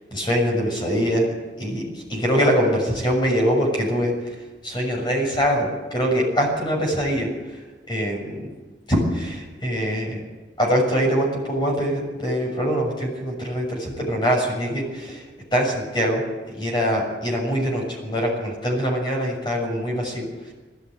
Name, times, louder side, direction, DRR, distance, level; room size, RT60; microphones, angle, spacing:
voice 1, 0.1-1.3 1.6-4.1 4.6-7.3 7.9-8.5 8.9-10.2 10.6-15.2 15.5-16.2 16.6-20.2, equal, 25° left, -1 dB, 6.9 m, -23 dB
20.0 x 15.0 x 9.3 m, 1.2 s
head